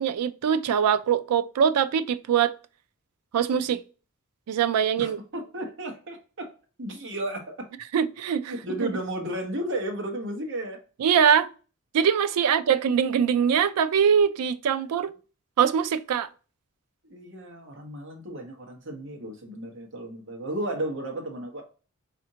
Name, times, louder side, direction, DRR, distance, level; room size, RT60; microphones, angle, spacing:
voice 1, 0.0-2.5 3.3-3.8 4.5-5.2 7.9-8.5 8.8-8.9 11.0-11.5 11.9-15.1 15.6-16.3, right 7 dB, 85° right, 0.3 m, -22 dB
voice 2, 5.0-6.5 6.8-7.7 8.5-10.8 12.4-12.7 14.9-15.0 17.0-21.6, right 1 dB, 55° right, 1.0 m, -34 dB
4.2 x 2.5 x 2.7 m
head